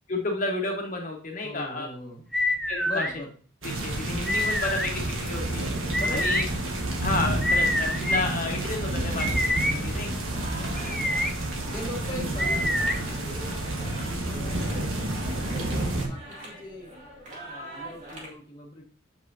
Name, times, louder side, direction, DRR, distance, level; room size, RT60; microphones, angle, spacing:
voice 1, 0.1-1.9 2.7-3.1 3.6-5.7 6.1-6.4 7.0-10.1, left 2 dB, 40° left, 0 dB, 1.2 m, -31 dB
voice 2, 1.4-2.2 2.9-3.3 6.0-6.2 9.6-10.9 11.7-13.6 14.2-17.0 17.4-18.9, left 1 dB, 20° left, -3 dB, 1.2 m, -41 dB
sound 1, 2.3-3.1 4.3-4.9 5.9-6.4 7.4-8.2 9.2-9.7 10.8-11.3 12.4-13.0, left 1 dB, ahead, 0.4 m, -26 dB
sound 2, 3.6-16.1, right 1 dB, 75° right, 1.4 m, -30 dB
sound 3, 10.3-18.3, right 1 dB, 35° right, 2.0 m, -42 dB
7.3 x 5.6 x 2.7 m, 0.41 s
head